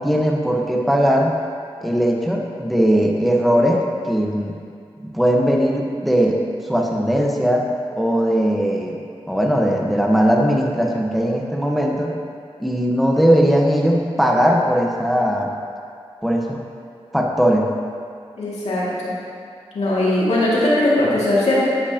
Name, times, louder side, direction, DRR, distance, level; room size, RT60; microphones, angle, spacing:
voice 1, 0.0-1.3 1.8-4.6 5.0-6.4 6.7-7.6 8.0-9.0 9.3-12.1 12.6-15.5 16.2-16.6 17.1-17.7, equal, ahead, 0 dB, 1.1 m, -19 dB
voice 2, 18.4-19.1 19.7-21.6, left 1 dB, 85° left, -8 dB, 2.2 m, -19 dB
10.5 x 8.2 x 2.9 m, 2.2 s
cardioid pair, 50°, 11 cm